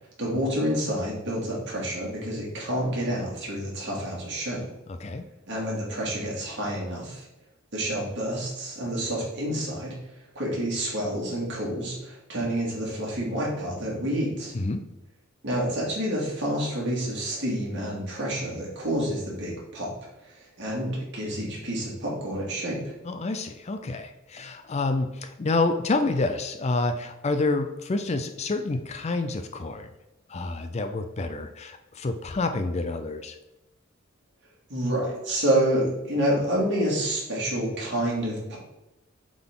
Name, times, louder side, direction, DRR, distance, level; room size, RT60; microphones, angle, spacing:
voice 1, 0.2-4.7 5.5-7.2 7.7-9.9 10.3-14.5 15.4-19.9 20.4-22.8 34.7-38.6, right 1 dB, 60° right, -4 dB, 2.5 m, -28 dB
voice 2, 23.0-29.9 30.3-33.4, left 3 dB, 30° left, 8 dB, 0.4 m, -28 dB
7.9 x 4.0 x 3.8 m, 0.94 s
head